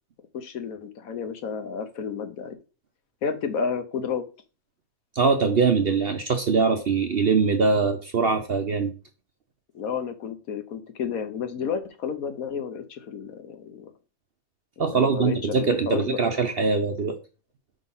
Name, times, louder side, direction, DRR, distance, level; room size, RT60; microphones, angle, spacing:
voice 1, 0.3-2.6 3.2-4.2 9.7-13.9 14.9-16.2, left 6 dB, 70° left, 9 dB, 1.3 m, -31 dB
voice 2, 5.1-8.9 14.8-17.2, right 4 dB, 55° right, 7 dB, 0.7 m, -22 dB
5.4 x 4.0 x 5.5 m, 0.34 s
omnidirectional pair, 1.6 m